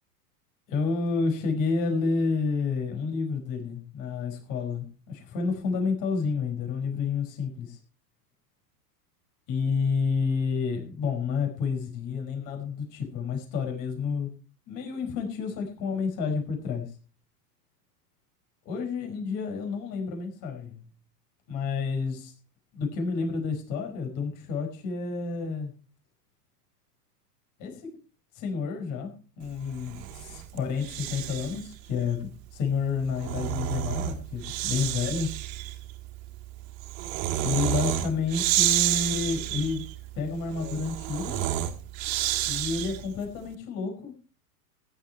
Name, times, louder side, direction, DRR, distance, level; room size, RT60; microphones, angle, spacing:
voice 1, 0.7-7.8 9.5-14.3 14.7-16.9 18.6-20.8 21.5-22.3 22.7-25.7 27.6-27.8 28.3-35.3 37.4-39.8 40.1-41.4 42.5-44.2, left 5 dB, 40° left, 5.0 m, -30 dB
Breathing, 29.7-31.7 32.9-43.2, right 12 dB, 55° right, 2.3 m, -30 dB
15.5 x 11.0 x 4.5 m
supercardioid pair, 140°, 48 cm